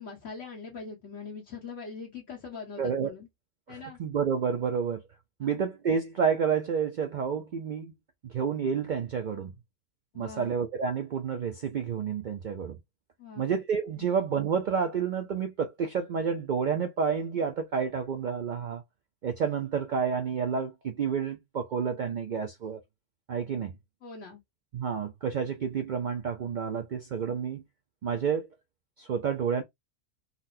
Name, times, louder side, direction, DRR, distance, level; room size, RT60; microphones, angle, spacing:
voice 1, 0.0-3.3 3.7-4.0 5.4-5.6 10.1-10.5 13.2-13.4 14.0-14.1 24.0-24.4, left 5 dB, 70° left, 1.4 m, -42 dB
voice 2, 2.8-3.1 3.7-5.0 5.4-7.9 8.2-9.5 10.1-12.8 13.4-18.8 19.2-22.8 23.3-23.7 24.7-27.6 28.0-28.5 29.0-29.6, right 6 dB, 70° right, 0.4 m, -29 dB
4.0 x 2.1 x 2.6 m
omnidirectional pair, 1.3 m